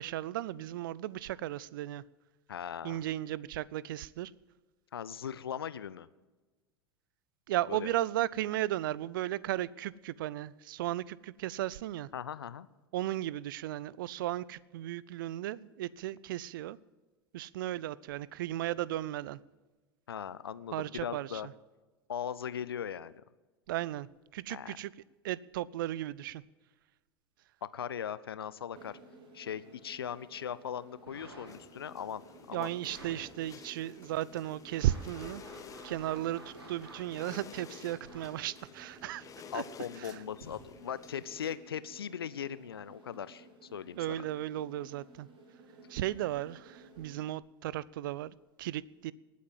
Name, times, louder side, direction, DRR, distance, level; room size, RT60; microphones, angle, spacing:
voice 1, 0.0-2.0 2.8-4.3 7.5-12.1 12.9-16.8 17.3-19.4 20.7-21.4 23.7-24.9 25.2-26.4 32.5-35.4 35.8-39.2 39.5-39.6 40.0-40.2 44.0-45.3 45.9-49.1, right 14 dB, 55° right, 22 dB, 0.5 m, -35 dB
voice 2, 2.5-3.0 4.9-6.1 7.7-7.9 12.1-12.7 20.1-21.5 22.1-23.1 24.5-24.8 27.6-28.9 29.3-32.2 32.5-32.7 39.5-44.2, left 8 dB, 70° left, 17 dB, 0.6 m, -39 dB
sound 1, 28.8-47.3, right 2 dB, 40° right, 3.4 m, -57 dB
sound 2, 30.9-31.8 32.9-33.2 33.8-33.9 34.5-37.4 38.0-38.3 39.3-39.4 40.3-40.7 41.4-41.5, right 1 dB, 70° right, 4.7 m, -51 dB
sound 3, 31.5-41.6, left 6 dB, 25° left, 1.2 m, -52 dB
19.5 x 8.4 x 7.6 m, 1.2 s
figure-of-eight pair, 80°, 13 cm